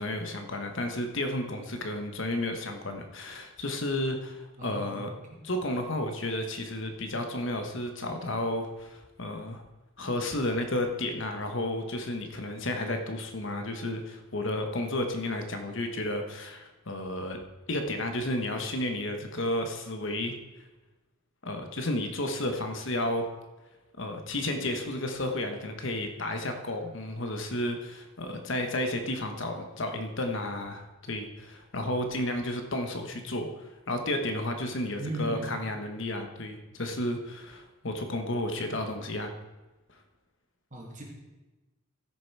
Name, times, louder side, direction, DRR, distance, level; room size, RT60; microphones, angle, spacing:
voice 1, 0.0-5.1 5.4-9.6 10.0-17.4 17.7-20.4 21.4-23.3 24.0-39.3, left 1 dB, 60° left, 5 dB, 1.1 m, -32 dB
voice 2, 4.6-5.1 33.1-33.2 35.0-35.6 40.7-41.0, equal, 35° right, -2 dB, 2.4 m, -37 dB
15.0 x 6.7 x 4.7 m, 1.1 s
head